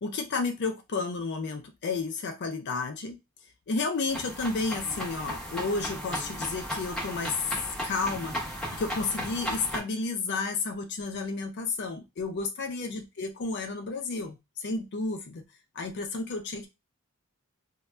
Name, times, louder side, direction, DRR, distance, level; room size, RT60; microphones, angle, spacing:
voice 1, 0.0-3.2 3.7-7.4 7.8-8.4 8.7-15.4 15.7-16.7, left 3 dB, 50° left, 6 dB, 0.5 m, -32 dB
sound 1, 4.1-9.8, equal, 5° left, 0.8 m, -35 dB
2.6 x 2.1 x 3.2 m, 0.23 s
head